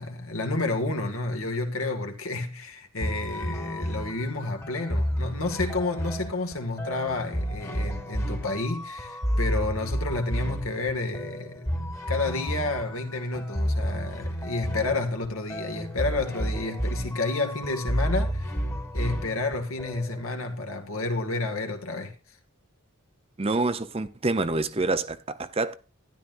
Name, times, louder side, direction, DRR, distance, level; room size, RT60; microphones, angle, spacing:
voice 1, 0.0-18.5 18.9-22.1, left 2 dB, 75° left, 2.0 m, -30 dB
sound 1, 3.0-20.3, equal, 15° left, 1.4 m, -31 dB
voice 2, 23.4-25.7, right 3 dB, 25° right, 0.6 m, -27 dB
13.0 x 11.0 x 2.6 m
head